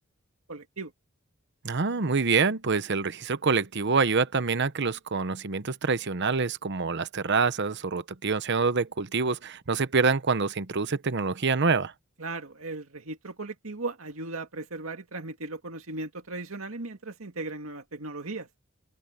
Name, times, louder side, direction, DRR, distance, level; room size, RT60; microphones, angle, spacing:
voice 1, 0.5-0.9 12.2-18.5, right 2 dB, 85° right, 2.2 m, -37 dB
voice 2, 1.6-11.9, right 4 dB, 60° right, 0.9 m, -26 dB
open air
head